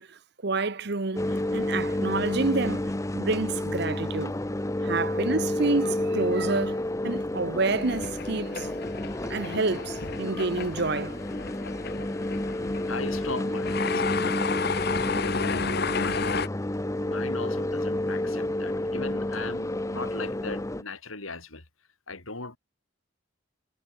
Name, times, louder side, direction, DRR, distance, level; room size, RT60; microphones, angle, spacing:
voice 1, 0.0-4.3 4.8-8.7 9.3-11.2, right 3 dB, 55° right, 1.0 m, -29 dB
sound 1, 1.2-20.8, left 1 dB, 15° left, 0.6 m, -30 dB
sound 2, 7.7-16.5, left 4 dB, 50° left, 1.1 m, -32 dB
voice 2, 12.9-14.3 15.0-16.5 16.9-21.6 22.1-22.6, left 3 dB, 85° left, 4.8 m, -38 dB
head